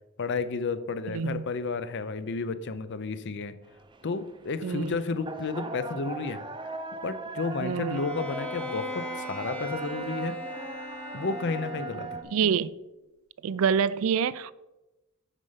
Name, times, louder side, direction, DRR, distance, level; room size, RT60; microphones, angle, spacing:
voice 1, 0.2-3.5 4.0-6.4 7.0-10.4 11.1-12.2, left 4 dB, 55° left, 13 dB, 0.6 m, -32 dB
voice 2, 1.1-1.4 4.6-5.0 7.6-8.0 12.2-12.7 13.4-14.5, right 7 dB, 65° right, 18 dB, 0.4 m, -26 dB
sound 1, 3.6-12.2, right 3 dB, 20° right, 0.6 m, -39 dB
Bowed string instrument, 7.9-12.3, left 1 dB, 5° left, 0.8 m, -39 dB
8.1 x 5.4 x 5.6 m, 1.0 s
head